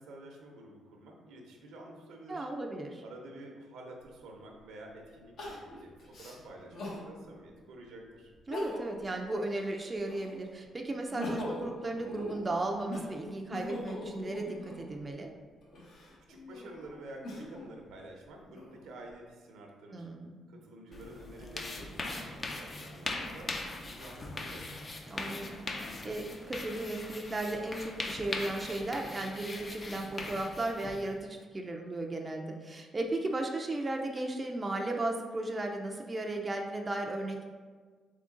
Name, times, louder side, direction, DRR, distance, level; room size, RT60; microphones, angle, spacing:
voice 1, 0.0-2.5 3.0-8.3 16.3-20.1 20.5-24.9, right 1 dB, 85° right, 1 dB, 0.8 m, -49 dB
voice 2, 2.3-3.0 8.5-15.3 19.9-20.4 25.1-37.4, right 2 dB, 25° right, 2 dB, 0.4 m, -35 dB
Crying sobbing, 4.0-4.1 5.4-7.1 7.6-7.7 8.3-9.0 9.4-10.4 10.9-14.9 15.6-17.7 18.3-19.1, left 1 dB, 70° left, 1.1 m, -41 dB
sound 1, 20.9-31.1, left 2 dB, 35° left, 0.5 m, -40 dB
3.7 x 3.6 x 3.7 m, 1.5 s
cardioid pair, 90°, 0 cm